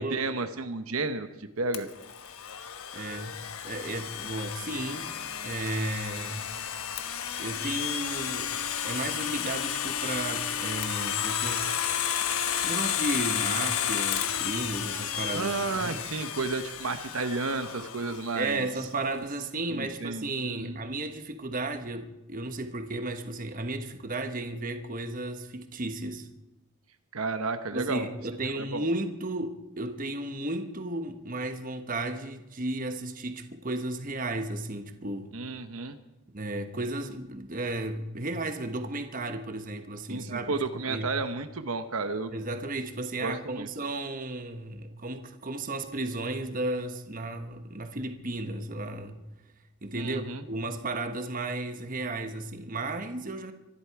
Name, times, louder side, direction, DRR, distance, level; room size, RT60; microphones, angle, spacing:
voice 1, 0.0-1.9 15.3-18.7 19.7-20.8 27.1-28.1 28.6-28.8 35.3-36.0 40.1-42.3 43.2-43.7 50.0-50.4, right 3 dB, 70° right, 1.0 m, -32 dB
Domestic sounds home sounds, 1.7-18.5, left 9 dB, 75° left, 1.2 m, -32 dB
voice 2, 2.9-3.4 3.6-6.5 7.4-11.7 12.6-15.5 15.8-16.0 18.3-26.3 27.7-35.3 36.3-41.1 42.3-49.2 49.8-53.5, right 2 dB, 35° right, 1.2 m, -34 dB
25.0 x 11.5 x 4.8 m
head